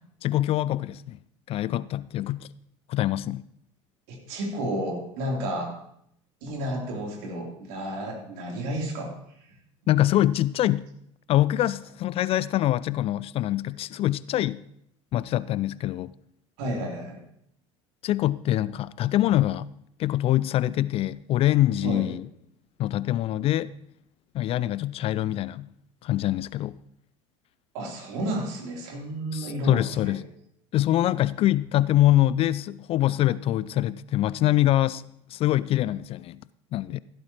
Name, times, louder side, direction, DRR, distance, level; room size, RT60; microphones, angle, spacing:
voice 1, 0.2-1.2 1.5-2.5 2.9-3.4 9.9-10.9 11.3-14.6 15.1-16.1 18.0-19.7 20.0-22.3 22.8-23.7 24.3-25.7 26.0-26.8 29.3-30.2 30.7-35.0 35.3-36.4 36.7-37.0, left 14 dB, 35° left, 0.4 m, -24 dB
voice 2, 4.1-5.8 6.4-9.1 9.4-9.6 16.6-17.2 21.8-22.1 27.7-30.2, right 1 dB, 60° right, 3.2 m, -31 dB
15.5 x 12.5 x 3.0 m
figure-of-eight pair, 75°, 16 cm